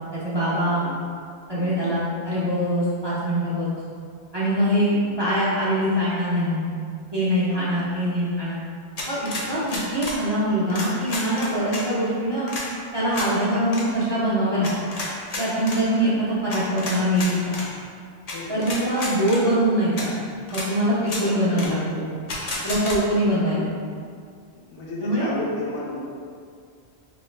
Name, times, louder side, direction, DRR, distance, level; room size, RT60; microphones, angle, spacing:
voice 1, 0.1-0.8 1.5-3.7 4.3-6.7 7.1-8.6 9.1-12.5 12.9-14.7 15.4-17.5 18.5-20.1 20.5-22.1 22.6-23.7 25.0-25.3, equal, 35° right, -9 dB, 0.4 m, -23 dB
voice 2, 1.5-1.9 7.5-7.8 9.3-9.6 15.9-16.2 18.3-18.6 21.2-21.7 24.5-26.0, left 2 dB, 80° left, -4 dB, 1.0 m, -35 dB
sound 1, 9.0-10.2 10.7-11.8 12.5-12.7 13.1-13.3 13.7-13.8 14.6-15.8 16.5-17.7 18.3-18.4 18.6-19.4 20.0-20.1 20.5-20.7 21.0-21.2 21.6-21.7 22.3-23.0, left 2 dB, 50° left, 0.5 m, -31 dB
3.0 x 2.3 x 3.2 m, 2.2 s
omnidirectional pair, 1.2 m